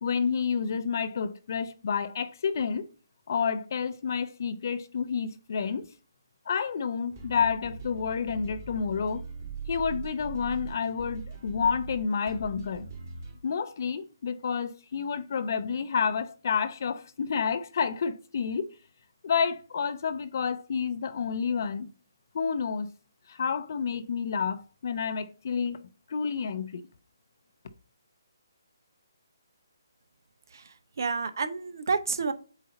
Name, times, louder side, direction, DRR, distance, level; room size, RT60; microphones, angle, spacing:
voice 1, 0.0-2.9 3.3-5.9 6.5-9.2 9.7-12.9 13.4-18.7 19.2-21.9 22.3-22.9 23.3-25.8 26.1-26.8, left 6 dB, 50° left, 0.7 m, -29 dB
sound 1, 7.1-13.4, right 4 dB, 35° right, 1.8 m, -41 dB
voice 2, 30.5-32.3, right 4 dB, 60° right, 0.9 m, -30 dB
8.1 x 2.8 x 5.2 m
figure-of-eight pair, 150°, 2 cm